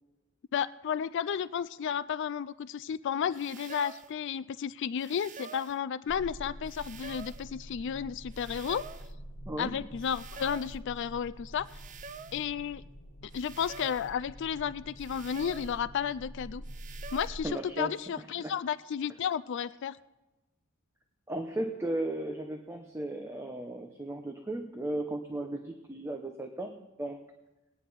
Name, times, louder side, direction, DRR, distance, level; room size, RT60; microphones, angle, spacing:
voice 1, 0.5-8.9 9.6-11.8 12.3-12.8 13.3-16.6 17.1-20.0, left 8 dB, 60° left, 16 dB, 0.4 m, -33 dB
sound 1, 3.3-4.1 5.0-5.8 6.6-7.5 8.3-9.1 10.0-10.8 11.6-12.5 13.3-14.1 15.0-15.8 16.6-17.3, right 5 dB, 40° right, 0.5 m, -47 dB
sound 2, 6.1-17.4, equal, 90° left, 1.3 m, -46 dB
voice 2, 17.4-17.9 18.4-18.5 21.3-26.7 27.0-27.2, right 1 dB, 15° right, 4 dB, 0.8 m, -35 dB
18.5 x 9.8 x 4.2 m, 1.1 s
head